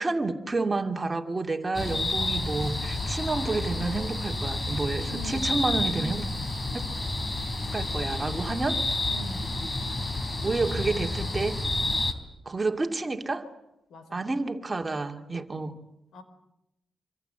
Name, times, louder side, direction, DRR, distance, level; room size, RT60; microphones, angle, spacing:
voice 1, 0.0-6.3 6.7-6.9 7.7-8.8 10.4-11.6 12.5-13.5 14.1-15.7, right 3 dB, 25° right, 5 dB, 2.5 m, -29 dB
sound 1, 1.7-12.1, left 2 dB, 25° left, 3.5 m, -30 dB
voice 2, 5.1-5.8 9.1-9.7 13.9-14.3 16.1-16.2, equal, 85° left, 10 dB, 4.7 m, -43 dB
26.0 x 26.0 x 8.0 m, 0.86 s
cardioid pair, 95°, 0 cm